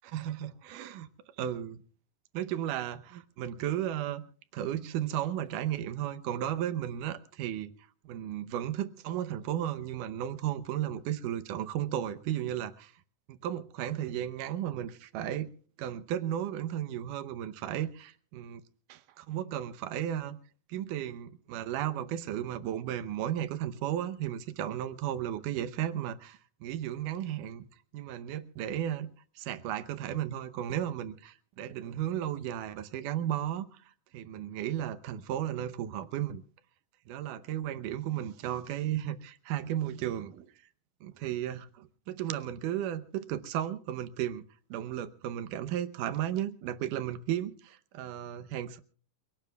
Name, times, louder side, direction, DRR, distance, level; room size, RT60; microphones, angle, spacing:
voice 1, 0.1-1.1 1.4-1.8 2.3-4.2 4.5-7.7 8.0-12.9 13.3-15.5 15.8-18.6 18.9-20.4 20.7-27.7 27.9-33.8 34.1-36.4 37.1-40.5 41.0-44.4 44.7-48.8, right 11 dB, 80° right, 2.5 m, -34 dB
28.5 x 17.5 x 2.3 m
omnidirectional pair, 3.7 m